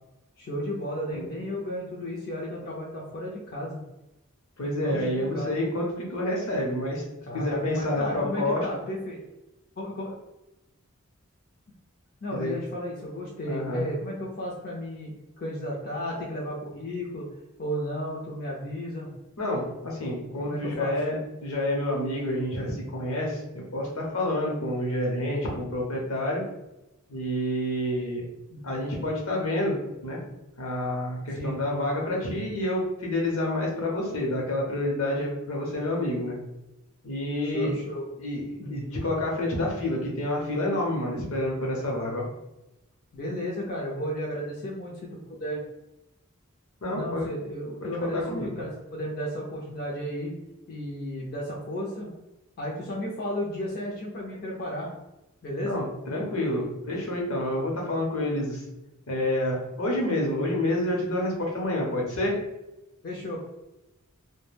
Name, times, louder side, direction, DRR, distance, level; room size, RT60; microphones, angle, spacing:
voice 1, 0.4-3.8 4.7-5.7 7.3-9.2 9.8-10.1 12.2-17.2 17.6-19.1 20.5-21.0 28.5-28.7 31.4-31.6 37.4-38.0 38.6-38.8 43.1-45.6 46.9-50.3 50.7-52.1 52.6-54.9 55.4-55.7 63.0-63.4, equal, 45° left, -3 dB, 0.5 m, -33 dB
voice 2, 4.6-7.0 7.3-8.6 12.3-12.5 13.5-13.9 19.4-26.4 27.1-28.3 28.6-29.8 30.0-30.2 30.6-36.3 37.0-37.7 38.2-42.3 46.8-47.3 47.8-48.5 55.6-58.6 59.1-62.4, left 1 dB, 70° left, -1 dB, 0.8 m, -28 dB
2.3 x 2.1 x 3.2 m, 0.96 s
head